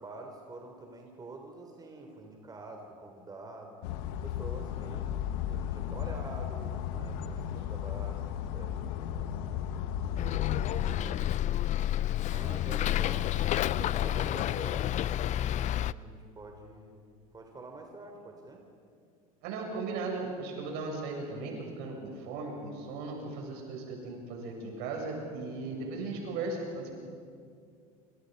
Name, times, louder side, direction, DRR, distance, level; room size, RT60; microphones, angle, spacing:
voice 1, 0.0-3.8 4.2-5.1 5.4-9.5 10.0-11.4 12.2-15.2 15.7-18.7 25.6-26.0, right 2 dB, 20° right, 3 dB, 3.6 m, -47 dB
sound 1, 3.8-11.0, left 10 dB, 70° left, 1.4 m, -35 dB
Bus, 10.2-15.9, left 12 dB, 40° left, 0.6 m, -30 dB
voice 2, 19.4-26.9, right 3 dB, 65° right, 0 dB, 7.8 m, -37 dB
28.0 x 26.0 x 5.5 m, 2.3 s
hypercardioid pair, 85°, 18 cm